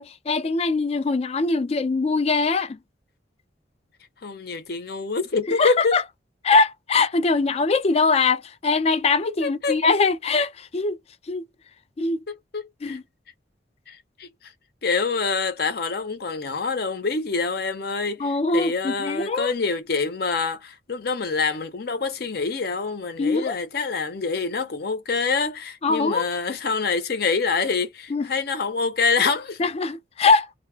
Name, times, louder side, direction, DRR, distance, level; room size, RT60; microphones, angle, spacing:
voice 1, 0.0-2.8 5.6-6.0 6.4-11.0 11.3-11.4 12.0-12.2 12.8-13.0 18.2-19.5 23.2-23.5 25.8-26.3 28.1-28.3 29.6-30.5, left 4 dB, 35° left, 0.4 m, -22 dB
voice 2, 4.2-6.0 9.4-9.8 12.5-13.0 13.9-14.5 14.8-29.6, left 4 dB, 60° left, 0.7 m, -26 dB
2.1 x 2.0 x 3.3 m
head